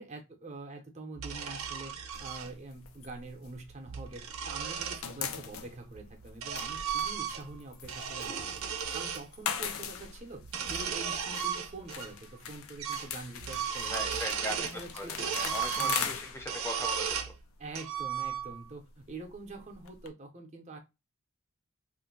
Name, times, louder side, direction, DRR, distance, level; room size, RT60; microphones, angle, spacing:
voice 1, 0.0-14.2 14.5-15.5 15.8-16.2 17.6-20.8, right 2 dB, 35° right, 3 dB, 0.6 m, -45 dB
sound 1, 1.2-2.5 3.7-5.0 5.9-7.6 7.8-9.2 10.4-12.1 12.4-12.5 12.8-13.1 13.4-14.8 15.2-17.3 17.7-18.7, right 7 dB, 80° right, 0.6 m, -35 dB
sound 2, 2.1-4.4 4.6-20.1, left 7 dB, 75° left, 0.4 m, -41 dB
voice 2, 13.9-17.2, left 1 dB, 10° left, 3 dB, 0.5 m, -39 dB
2.5 x 2.1 x 3.7 m, 0.25 s
head